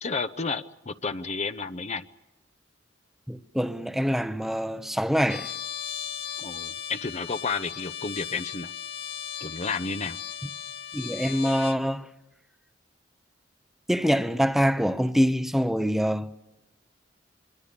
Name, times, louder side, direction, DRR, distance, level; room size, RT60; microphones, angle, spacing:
voice 1, 0.0-2.1 6.4-8.7 9.4-10.2, left 4 dB, 40° left, 0.8 m, -31 dB
voice 2, 3.3-5.5 10.9-12.1 13.9-16.3, equal, ahead, 0.9 m, -25 dB
Trumpet, 5.3-11.8, left 8 dB, 60° left, 0.8 m, -37 dB
25.0 x 24.0 x 6.9 m
head